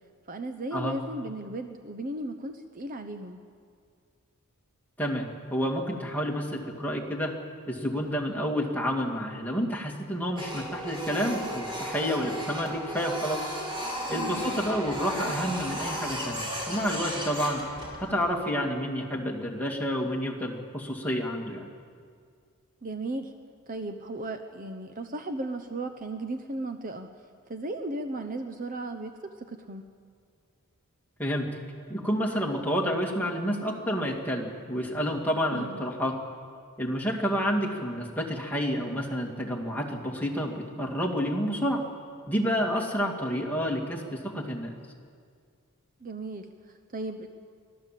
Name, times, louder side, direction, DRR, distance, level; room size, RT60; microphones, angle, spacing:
voice 1, 0.3-3.4 14.1-14.6 22.8-23.3 23.7-27.1 27.5-29.1 29.5-29.8 35.5-35.8 46.0-47.3, right 2 dB, 40° right, 7 dB, 0.9 m, -35 dB
voice 2, 5.0-7.3 7.7-13.4 14.1-17.6 18.0-21.7 31.2-31.5 31.9-36.1 36.8-41.8 42.3-44.7, equal, 10° left, -1 dB, 2.4 m, -29 dB
Printer, 10.4-18.2, equal, 25° right, 4.8 m, -34 dB
24.0 x 16.0 x 7.6 m, 2.1 s
head